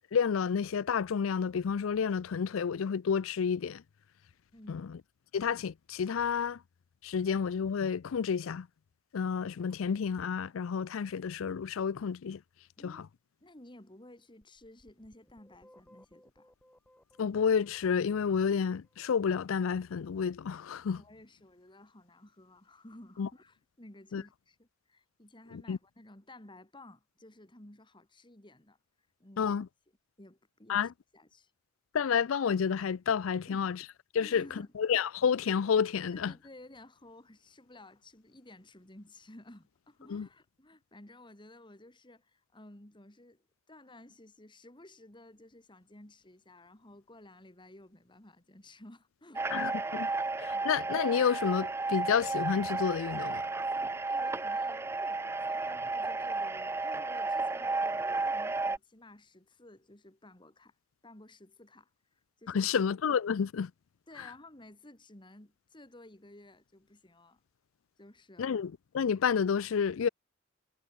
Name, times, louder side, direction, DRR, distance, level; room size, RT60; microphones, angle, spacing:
voice 1, 0.1-3.8 4.7-4.8 5.3-6.6 7.0-8.7 9.1-12.4 12.8-13.0 17.2-21.0 23.2-23.3 24.1-24.2 25.5-25.8 29.4-29.7 30.7-30.9 31.9-33.8 34.1-34.4 34.8-36.3 40.1-40.3 49.5-50.1 50.4-53.4 62.5-63.7 68.4-70.1, left 6 dB, 75° left, 0.4 m, -30 dB
voice 2, 4.5-4.9 12.8-13.1 13.4-16.5 20.8-28.8 29.2-29.6 30.2-31.5 33.4-33.7 34.2-34.7 36.1-50.2 50.5-50.8 54.1-60.7 61.0-62.8 64.1-67.4 68.0-68.5, left 1 dB, 25° left, 2.6 m, -54 dB
sound 1, 14.4-19.3, left 1 dB, 5° left, 2.7 m, -63 dB
sound 2, 49.4-58.8, right 3 dB, 10° right, 0.3 m, -33 dB
head